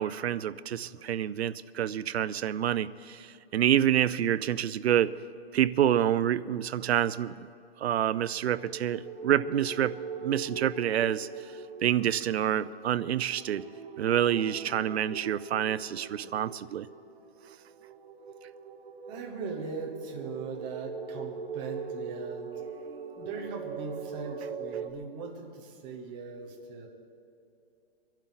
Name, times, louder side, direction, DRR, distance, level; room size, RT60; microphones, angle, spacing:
voice 1, 0.0-5.1 5.5-7.5 7.8-9.9 10.2-11.3 11.8-13.7 14.0-16.9, right 10 dB, 90° right, 18 dB, 0.6 m, -27 dB
sound 1, 8.3-24.9, right 6 dB, 65° right, 1.2 m, -41 dB
voice 2, 19.1-22.5 23.2-26.9, right 4 dB, 15° right, 1 dB, 1.0 m, -39 dB
23.5 x 11.5 x 4.0 m, 2.7 s
hypercardioid pair, 175°, 31 cm